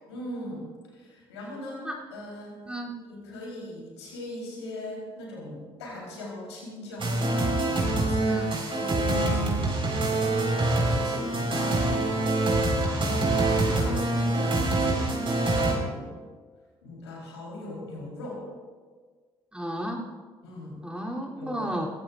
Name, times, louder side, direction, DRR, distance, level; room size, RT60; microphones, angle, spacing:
voice 1, 0.1-0.7 0.9-2.6 3.0-8.4 8.6-11.6 12.1-16.2 16.8-18.4 20.4-20.8 21.4-21.7, left 1 dB, 85° left, -3 dB, 3.8 m, -40 dB
sound 1, 7.0-15.7, right 2 dB, 40° right, 4.5 m, -25 dB
voice 2, 8.2-8.5 11.5-11.7 19.5-20.1 20.8-21.9, right 1 dB, 5° right, -2 dB, 3.2 m, -33 dB
23.5 x 15.5 x 2.5 m, 1.5 s
hypercardioid pair, 45°, 14 cm